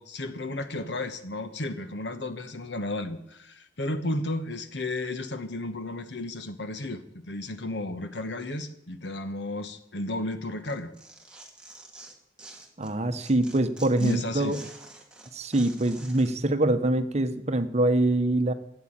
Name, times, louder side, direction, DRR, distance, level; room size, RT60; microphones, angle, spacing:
voice 1, 0.0-10.9 14.0-14.6, left 2 dB, 70° left, 10 dB, 1.3 m, -33 dB
Tearing, 10.7-12.9 13.2-16.3, right 2 dB, 5° right, 2.2 m, -48 dB
voice 2, 12.8-14.6 15.3-18.5, right 1 dB, 40° right, 9 dB, 1.0 m, -24 dB
14.0 x 8.6 x 8.9 m, 0.85 s
head